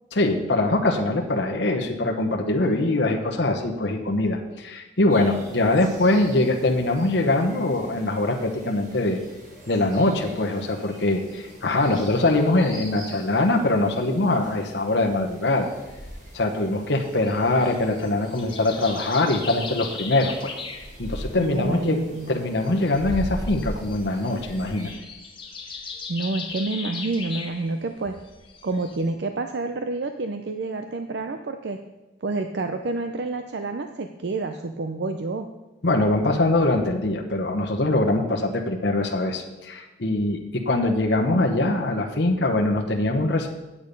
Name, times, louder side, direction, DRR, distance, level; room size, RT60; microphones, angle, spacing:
voice 1, 0.1-9.2 9.7-15.7 16.3-20.5 21.0-22.0 22.3-24.9 35.8-43.5, left 2 dB, 65° left, 2 dB, 1.0 m, -23 dB
sound 1, 5.1-24.9, equal, 45° right, 3.7 m, -41 dB
sound 2, 17.0-29.1, left 4 dB, 25° left, 1.2 m, -39 dB
voice 2, 21.4-22.3 26.1-28.2 28.6-31.8 32.2-35.5, right 3 dB, 60° right, 7 dB, 0.5 m, -28 dB
8.6 x 8.5 x 5.3 m, 1.1 s
head